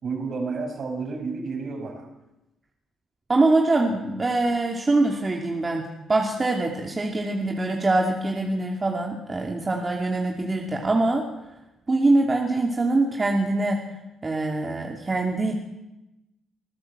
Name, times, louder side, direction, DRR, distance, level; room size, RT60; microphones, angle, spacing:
voice 1, 0.0-2.1, right 4 dB, 55° right, 3 dB, 6.1 m, -31 dB
voice 2, 3.3-11.3 11.9-13.9 14.2-15.5, right 2 dB, 25° right, 1 dB, 2.7 m, -23 dB
25.5 x 14.5 x 7.8 m, 0.96 s
cardioid pair, 90°, 0 cm